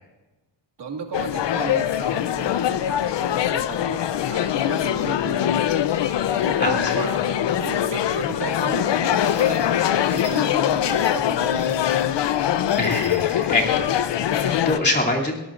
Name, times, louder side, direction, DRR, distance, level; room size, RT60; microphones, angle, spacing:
voice 1, 0.8-5.8 6.3-11.9, right 5 dB, 70° right, 2 dB, 2.2 m, -35 dB
sound 1, 1.1-14.8, left 10 dB, 75° left, 0.7 m, -23 dB
Wind instrument woodwind instrument, 4.1-9.2, left 8 dB, 55° left, 1.1 m, -32 dB
voice 2, 6.6-7.0 12.8-15.4, left 2 dB, 25° left, -2 dB, 2.8 m, -25 dB
sound 2, 9.1-13.5, right 3 dB, 20° right, 6.2 m, -45 dB
22.0 x 18.0 x 2.5 m, 1.1 s
wide cardioid pair, 150°, 43 cm